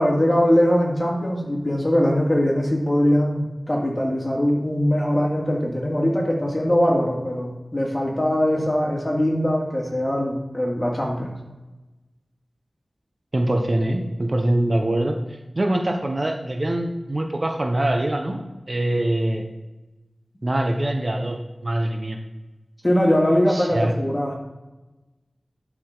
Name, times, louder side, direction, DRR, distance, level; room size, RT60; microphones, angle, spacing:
voice 1, 0.0-11.3 22.8-24.3, equal, 25° left, -1 dB, 2.2 m, -21 dB
voice 2, 13.3-18.4 18.7-19.4 20.4-22.2 23.5-23.9, right 1 dB, 40° right, 4 dB, 0.8 m, -23 dB
11.5 x 4.9 x 3.9 m, 1.1 s
wide cardioid pair, 70°, 0 cm